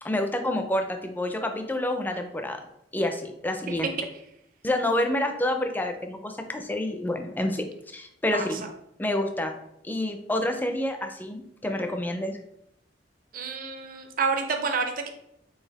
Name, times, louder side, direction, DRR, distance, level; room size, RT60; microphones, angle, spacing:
voice 1, 0.0-2.6 2.9-3.9 4.6-8.6 9.0-9.5 9.8-12.4, left 1 dB, 10° left, 6 dB, 0.4 m, -28 dB
voice 2, 13.3-15.1, right 4 dB, 50° right, 5 dB, 0.6 m, -29 dB
4.0 x 3.2 x 4.0 m, 0.80 s
head